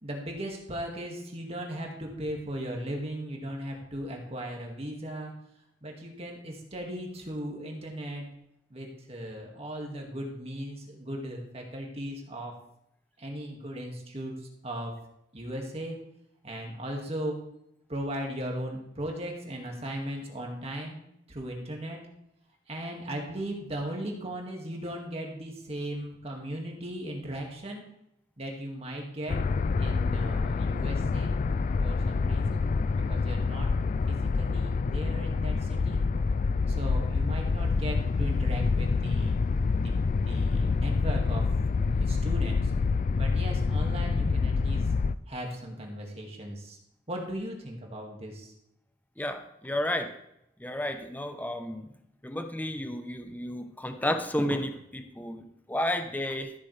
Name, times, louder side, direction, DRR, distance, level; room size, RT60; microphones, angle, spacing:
voice 1, 0.0-5.3 5.8-8.3 8.7-12.5 13.2-14.9 15.3-15.9 16.4-17.4 17.9-21.0 21.3-22.0 22.7-27.8 28.4-29.4 29.8-31.4 31.8-33.7 34.1-36.0 36.7-39.4 39.8-39.9 40.2-41.5 42.0-42.7 43.1-44.9 45.3-46.8 47.1-48.5, right 1 dB, 35° right, 0 dB, 2.0 m, -37 dB
sound 1, 29.3-45.2, left 4 dB, 45° left, 0.3 m, -27 dB
voice 2, 49.2-50.2 50.6-51.9 52.2-56.5, left 1 dB, 10° left, 7 dB, 0.7 m, -32 dB
13.5 x 8.5 x 3.3 m, 0.79 s
head